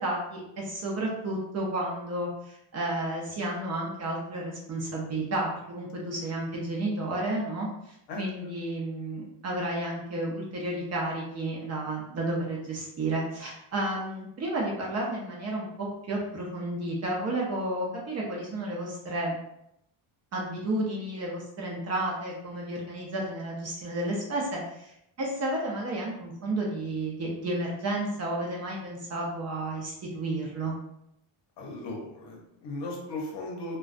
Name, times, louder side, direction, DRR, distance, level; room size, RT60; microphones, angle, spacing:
voice 1, 0.0-19.3 20.3-30.7, right 1 dB, 35° right, -3 dB, 0.5 m, -32 dB
voice 2, 31.6-33.8, left 2 dB, 60° left, -1 dB, 0.8 m, -37 dB
2.3 x 2.2 x 2.4 m, 0.79 s
cardioid pair, 145°, 48 cm